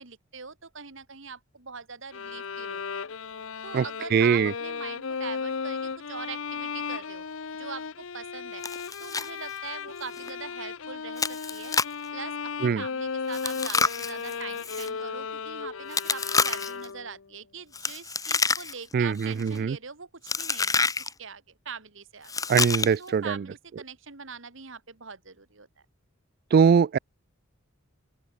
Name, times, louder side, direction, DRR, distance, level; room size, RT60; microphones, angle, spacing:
voice 1, 0.0-3.0 3.6-7.2 7.6-8.7 9.0-11.8 12.1-20.9 21.2-22.3 23.0-25.7, right 5 dB, 65° right, 2.3 m, -42 dB
sound 1, 2.1-17.2, left 5 dB, 75° left, 0.8 m, -35 dB
voice 2, 4.1-4.5 12.6-12.8 18.9-19.8 22.5-23.4 26.5-27.0, right 6 dB, 50° right, 0.3 m, -22 dB
Chewing mastication, 8.6-9.3 9.6-9.7 10.2-10.3 11.2-12.0 13.3-14.9 15.9-16.9 17.7-18.9 19.2-19.6 20.3-21.1 22.2-23.1, left 4 dB, 15° left, 1.6 m, -28 dB
open air
head